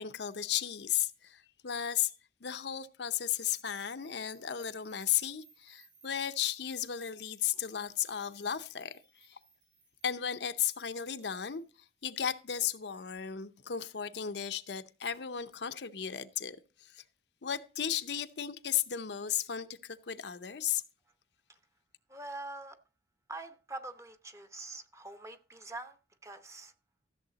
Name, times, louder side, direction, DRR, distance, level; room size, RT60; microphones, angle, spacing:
voice 1, 0.0-2.1 2.4-9.4 10.0-11.6 12.0-17.0 17.4-20.8, left 9 dB, 60° left, 0.6 m, -35 dB
sound 1, 3.8-12.8, right 4 dB, 80° right, 6.0 m, -64 dB
voice 2, 22.1-22.8 23.3-26.0 26.2-26.7, right 2 dB, 15° right, 0.9 m, -44 dB
14.0 x 7.2 x 3.9 m
head